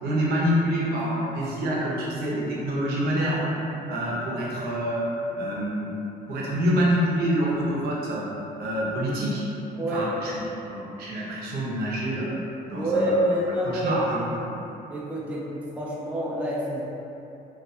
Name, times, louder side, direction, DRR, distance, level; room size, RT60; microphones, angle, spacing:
voice 1, 0.0-3.5 3.9-5.0 5.4-5.9 6.3-8.3 8.6-9.4 9.9-10.3 10.6-12.4 12.7-13.4 13.6-14.3, equal, 65° right, -6 dB, 0.7 m, -26 dB
voice 2, 9.7-10.1 12.7-14.2 14.9-16.9, right 1 dB, 10° right, -5 dB, 0.3 m, -27 dB
2.3 x 2.2 x 2.6 m, 2.9 s
cardioid pair, 110°, 17 cm